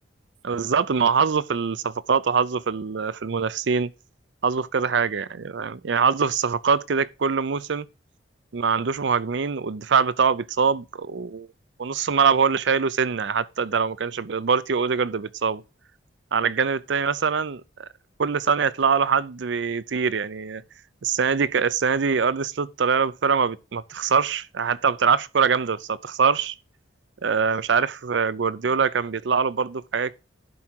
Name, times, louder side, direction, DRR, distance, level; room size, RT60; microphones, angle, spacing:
voice 1, 0.4-3.9 4.4-7.9 8.5-11.5 11.8-15.6 16.3-17.9 18.2-20.6 21.0-26.5 27.2-30.2, right 6 dB, 65° right, 0.5 m, -23 dB
11.0 x 4.8 x 4.4 m
head